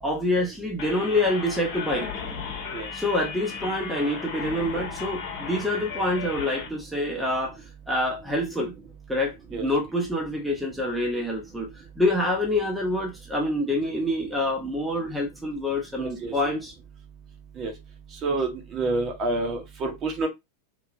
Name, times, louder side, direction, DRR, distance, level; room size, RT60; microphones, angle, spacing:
voice 1, 0.0-2.1 2.9-7.6 7.9-8.7 9.1-16.7, left 1 dB, 5° right, 0.8 m, -26 dB
sound 1, 0.8-6.7, left 6 dB, 45° left, 1.1 m, -35 dB
voice 2, 16.0-16.3 17.6-17.7 18.2-20.3, right 3 dB, 30° right, 1.0 m, -28 dB
3.2 x 2.8 x 2.5 m
figure-of-eight pair, 90°, 0 cm